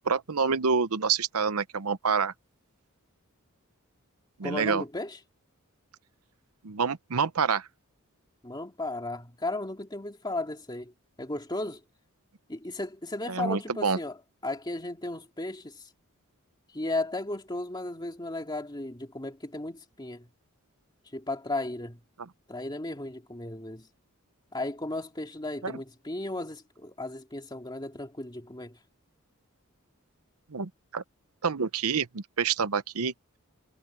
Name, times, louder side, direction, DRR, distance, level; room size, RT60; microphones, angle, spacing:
voice 1, 0.0-2.3 4.4-4.8 6.6-7.7 13.3-14.0 22.2-22.3 25.6-25.7 30.5-31.0 31.4-33.1, right 5 dB, 85° right, 0.8 m, -27 dB
voice 2, 4.4-5.2 8.4-10.9 11.2-11.8 12.5-14.2 14.4-15.8 16.7-20.3 21.1-22.0 22.5-23.9 24.5-28.8, left 2 dB, 20° left, 2.3 m, -35 dB
head